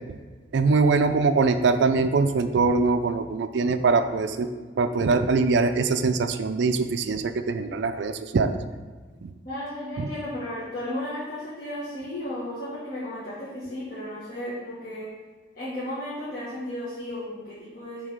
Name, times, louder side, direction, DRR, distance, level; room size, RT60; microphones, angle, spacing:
voice 1, 0.5-4.5 4.8-8.6 9.2-9.3 10.0-10.1, right 4 dB, 60° right, 9 dB, 0.4 m, -22 dB
voice 2, 9.4-15.1 15.5-18.1, left 1 dB, 45° left, -10 dB, 1.6 m, -34 dB
7.3 x 3.4 x 5.1 m, 1.4 s
head